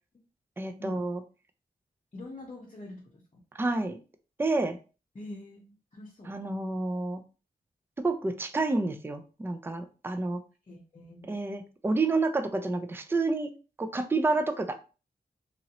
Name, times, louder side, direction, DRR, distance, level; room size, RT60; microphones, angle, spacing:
voice 1, 0.6-1.2 3.5-4.0 4.4-4.8 6.3-7.2 8.0-10.4 11.3-13.5 13.8-14.8, right 3 dB, 15° right, 8 dB, 0.4 m, -29 dB
voice 2, 2.1-3.2 5.1-6.3 10.7-11.3, left 1 dB, 35° left, -4 dB, 0.7 m, -44 dB
2.9 x 2.6 x 2.9 m, 0.34 s
wide cardioid pair, 110°, 17 cm